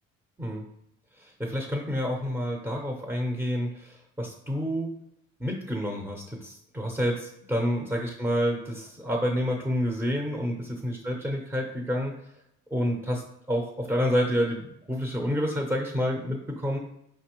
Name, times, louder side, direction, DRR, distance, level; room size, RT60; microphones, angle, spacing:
voice 1, 1.2-4.9 5.4-12.1 12.7-13.2 13.5-16.8, equal, 5° right, 0 dB, 0.7 m, -29 dB
4.5 x 3.3 x 3.0 m, 0.77 s
cardioid pair, 90°, 30 cm